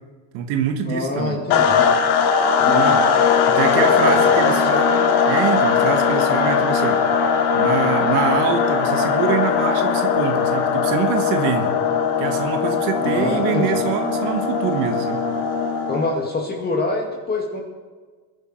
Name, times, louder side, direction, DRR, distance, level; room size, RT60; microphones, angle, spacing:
voice 1, 0.3-1.4 2.6-3.0 3.5-7.0 7.5-11.7 12.2-15.3, right 8 dB, 75° right, 6 dB, 1.5 m, -25 dB
voice 2, 0.8-1.9 2.6-3.0 3.7-4.8 13.0-13.7 15.9-17.6, left 2 dB, 20° left, 0 dB, 2.1 m, -25 dB
sound 1, 1.5-16.3, left 6 dB, 60° left, 1.7 m, -19 dB
21.0 x 11.0 x 4.4 m, 1.5 s
supercardioid pair, 115°, 43 cm